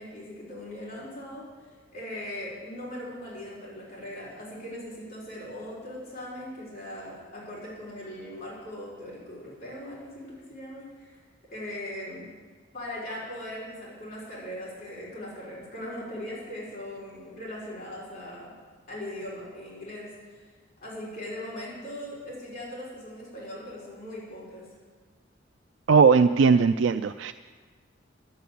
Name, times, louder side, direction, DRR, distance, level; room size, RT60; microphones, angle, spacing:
voice 1, 0.0-1.5 1.9-11.2 11.5-12.3 12.7-18.5 18.9-20.4 20.8-24.7, left 1 dB, 50° left, -6 dB, 4.7 m, -39 dB
voice 2, 25.9-27.3, right 5 dB, 70° right, 8 dB, 0.4 m, -19 dB
11.5 x 9.3 x 8.4 m, 1.5 s
head